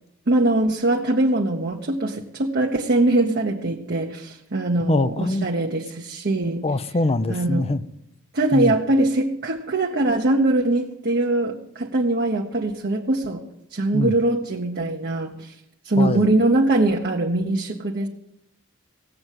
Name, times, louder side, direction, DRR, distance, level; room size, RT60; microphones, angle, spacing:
voice 1, 0.3-6.7 7.3-7.7 8.3-13.4 13.7-15.5 15.8-18.1, right 2 dB, 50° right, 0 dB, 1.1 m, -22 dB
voice 2, 4.9-5.5 6.6-7.8 8.5-8.7 13.9-14.1 16.0-16.3, left 2 dB, 30° left, 14 dB, 0.6 m, -23 dB
17.0 x 7.9 x 7.5 m, 0.77 s
head